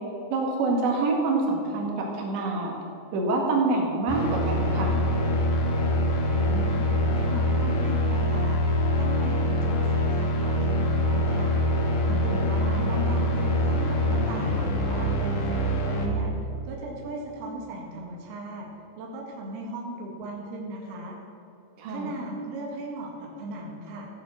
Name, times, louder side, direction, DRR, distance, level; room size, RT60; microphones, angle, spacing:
voice 1, 0.3-2.7 3.1-5.0 12.1-12.5 21.8-22.1, right 3 dB, 80° right, -1 dB, 4.3 m, -26 dB
sound 1, 4.1-16.1, left 1 dB, 55° left, 2.7 m, -24 dB
voice 2, 6.3-6.9 7.1-11.6 12.0-16.3 16.7-18.7 19.0-21.2 21.9-24.1, right 2 dB, 65° right, -2 dB, 3.6 m, -37 dB
15.0 x 9.3 x 7.5 m, 2.8 s
omnidirectional pair, 5.1 m